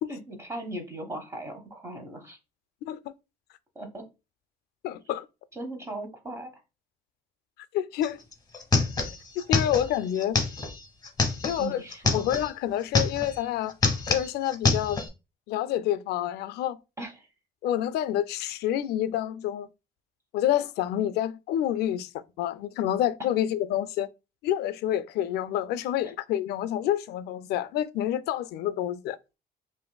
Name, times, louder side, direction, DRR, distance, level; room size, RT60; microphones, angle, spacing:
voice 1, 0.1-2.4 3.7-4.0 5.5-6.5 11.6-12.3 17.0-17.3, right 1 dB, 15° right, 1.1 m, -38 dB
voice 2, 4.8-5.3 7.7-8.2 9.5-10.4 11.4-11.8 12.1-13.7 14.1-15.0 15.5-16.8 17.6-19.7 20.3-24.1 24.4-29.2, left 11 dB, 75° left, 0.4 m, -28 dB
sound 1, 8.0-8.1 8.3-12.5 12.8-13.4 13.7-15.1, left 4 dB, 25° left, 0.8 m, -26 dB
5.4 x 2.5 x 2.2 m
cardioid pair, 110°, 17 cm